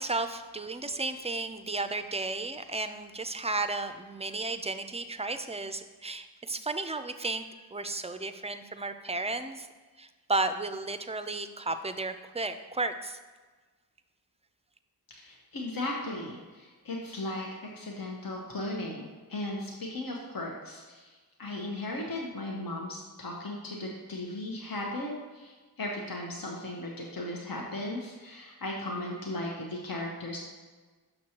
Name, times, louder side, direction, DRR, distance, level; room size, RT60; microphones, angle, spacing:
voice 1, 0.0-9.7 10.0-13.2, right 3 dB, 15° right, 9 dB, 0.4 m, -33 dB
voice 2, 15.2-30.4, left 1 dB, 60° left, -2 dB, 0.9 m, -37 dB
6.6 x 6.1 x 2.9 m, 1.3 s
wide cardioid pair, 50°, 38 cm